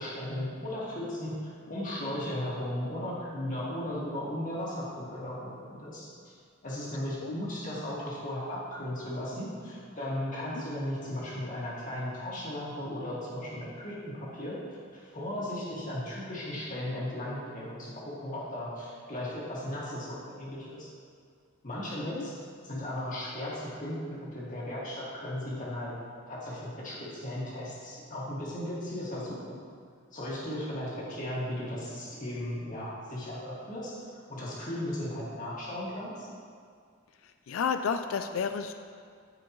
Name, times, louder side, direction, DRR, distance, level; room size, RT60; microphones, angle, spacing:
voice 1, 0.0-6.3 6.6-14.5 14.9-20.9 21.6-22.4 22.6-25.9 26.3-29.6 30.1-36.3, left 1 dB, 40° left, -6 dB, 2.0 m, -36 dB
voice 2, 37.2-38.7, left 6 dB, 75° left, 8 dB, 0.4 m, -31 dB
13.5 x 5.0 x 3.1 m, 2.2 s
head